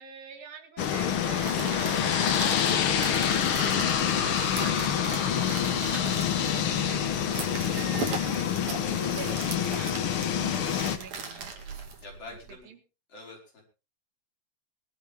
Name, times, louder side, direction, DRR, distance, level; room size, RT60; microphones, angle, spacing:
voice 1, 0.0-3.1 3.6-5.5 5.8-11.5 12.3-12.4 12.7-12.8, right 6 dB, 85° right, 2 dB, 4.1 m, -46 dB
sound 1, 0.8-11.0, left 8 dB, 65° left, 1.4 m, -27 dB
sound 2, 1.2-12.5, right 4 dB, 55° right, 3.5 m, -39 dB
voice 2, 12.0-12.7 13.1-13.6, left 2 dB, 45° left, 0 dB, 5.4 m, -45 dB
20.5 x 12.0 x 3.6 m, 0.32 s
omnidirectional pair, 3.9 m